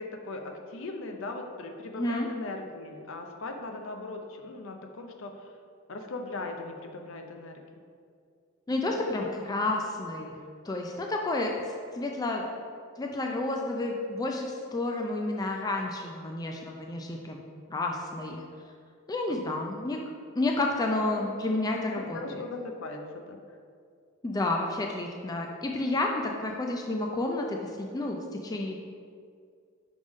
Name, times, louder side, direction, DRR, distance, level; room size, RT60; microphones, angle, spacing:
voice 1, 0.0-5.5 5.9-7.6 8.9-9.3 19.3-19.6 21.2-21.3 22.0-23.4, left 3 dB, 65° left, 4 dB, 0.6 m, -39 dB
voice 2, 2.0-2.3 8.7-10.4 10.6-12.4 13.0-17.4 17.7-18.4 19.1-20.0 20.4-22.4 24.2-28.8, left 2 dB, 20° left, 1 dB, 0.3 m, -30 dB
5.2 x 5.1 x 3.5 m, 2.2 s
head